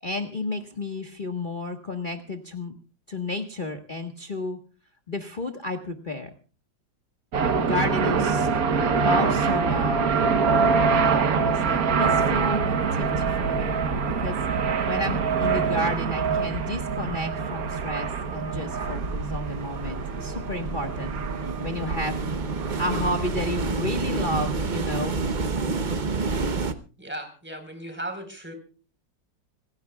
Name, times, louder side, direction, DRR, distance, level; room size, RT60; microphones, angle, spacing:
voice 1, 0.0-2.8 3.1-4.6 5.1-6.3 7.6-8.5 9.0-10.1 11.1-13.8 14.2-14.4 14.8-22.3 22.8-25.2, left 2 dB, 30° left, 3 dB, 1.4 m, -32 dB
sound 1, 7.3-25.4, right 5 dB, 55° right, 1.5 m, -25 dB
sound 2, 13.1-26.7, right 4 dB, 40° right, 0.7 m, -31 dB
voice 2, 27.0-28.5, right 1 dB, 5° right, 6 dB, 4.3 m, -36 dB
27.0 x 16.5 x 2.4 m, 0.36 s
omnidirectional pair, 2.0 m